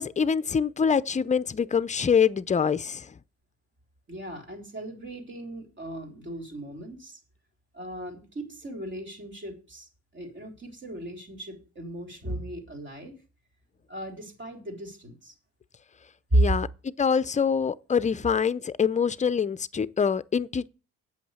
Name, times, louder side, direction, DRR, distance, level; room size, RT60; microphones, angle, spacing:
voice 1, 0.0-3.1 16.3-20.7, left 6 dB, 25° left, 0.5 m, -25 dB
voice 2, 4.1-7.2 7.7-13.2 13.9-15.3 16.3-16.4, right 1 dB, 40° right, 3.7 m, -33 dB
8.3 x 6.4 x 8.1 m
cardioid pair, 90°, 30 cm